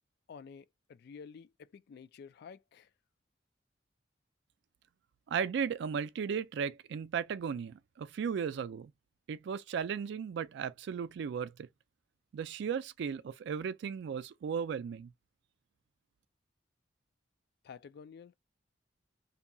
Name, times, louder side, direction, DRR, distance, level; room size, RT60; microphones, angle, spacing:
voice 1, 0.3-2.9 17.6-18.3, left 6 dB, 60° left, 0.3 m, -51 dB
voice 2, 5.3-8.9 9.3-11.7 12.3-15.1, right 7 dB, 65° right, 0.3 m, -36 dB
2.7 x 2.2 x 2.6 m
head